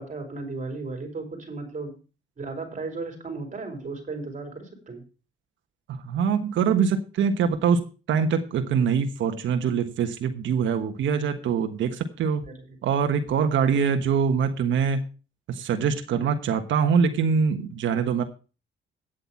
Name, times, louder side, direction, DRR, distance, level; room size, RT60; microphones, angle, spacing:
voice 1, 0.0-2.0 2.4-5.0 12.5-12.6 13.6-13.7 16.1-16.4, right 3 dB, 40° right, 5 dB, 4.3 m, -35 dB
voice 2, 5.9-12.4 12.8-15.0 15.5-18.2, right 6 dB, 75° right, 7 dB, 1.4 m, -24 dB
9.2 x 8.0 x 5.9 m, 0.34 s
cardioid pair, 90°, 20 cm